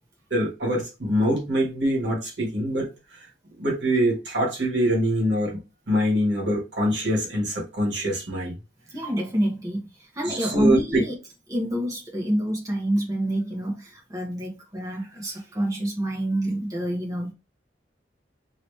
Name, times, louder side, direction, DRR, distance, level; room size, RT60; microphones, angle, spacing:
voice 1, 0.3-2.9 3.6-5.6 5.9-8.5 10.2-11.0, equal, 65° right, 1.4 m, -24 dB
voice 2, 8.9-11.1 11.5-17.3, equal, 20° right, 0.9 m, -27 dB
2.9 x 2.8 x 3.2 m
head